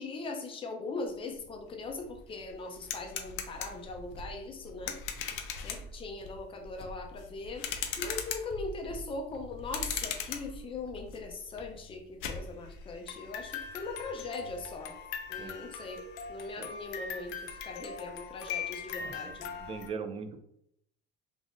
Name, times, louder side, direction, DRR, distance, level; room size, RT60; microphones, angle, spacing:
voice 1, 0.0-5.0 5.6-7.7 8.0-14.9 15.3-16.0 16.3-19.5, left 3 dB, 25° left, 4 dB, 0.6 m, -40 dB
sound 1, 1.5-1.6 1.9-19.9, left 6 dB, 75° left, 0.5 m, -40 dB
voice 2, 19.0-20.4, right 5 dB, 25° right, 6 dB, 0.3 m, -41 dB
3.5 x 2.5 x 2.5 m, 0.74 s
cardioid pair, 135°, 21 cm